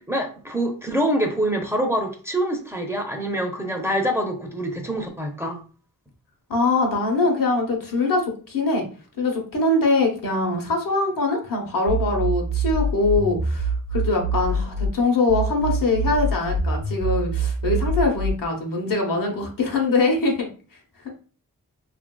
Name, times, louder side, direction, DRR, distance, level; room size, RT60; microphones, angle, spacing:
voice 1, 0.1-5.6, right 1 dB, 5° right, 2 dB, 0.6 m, -25 dB
voice 2, 6.5-8.8 9.2-20.5, left 3 dB, 70° left, 1 dB, 0.9 m, -23 dB
sound 1, 11.9-14.9 15.3-18.3, right 2 dB, 75° right, 0.6 m, -25 dB
2.8 x 2.5 x 2.2 m, 0.38 s
cardioid pair, 50°, 35 cm